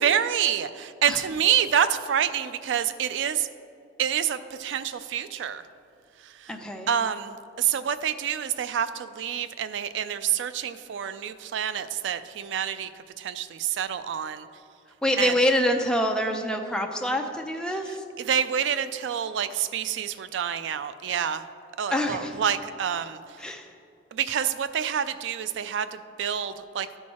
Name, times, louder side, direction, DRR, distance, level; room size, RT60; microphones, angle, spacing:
voice 1, 0.0-3.5 4.0-5.6 6.2-6.5 6.9-12.9 13.2-14.5 15.2-15.3 18.2-21.4 21.8-23.2 24.1-27.0, right 8 dB, 70° right, 12 dB, 0.3 m, -27 dB
voice 2, 6.5-6.9 15.0-18.0 21.9-22.3 23.4-23.7, equal, 5° left, 3 dB, 0.5 m, -26 dB
12.5 x 4.6 x 4.2 m, 2.4 s
head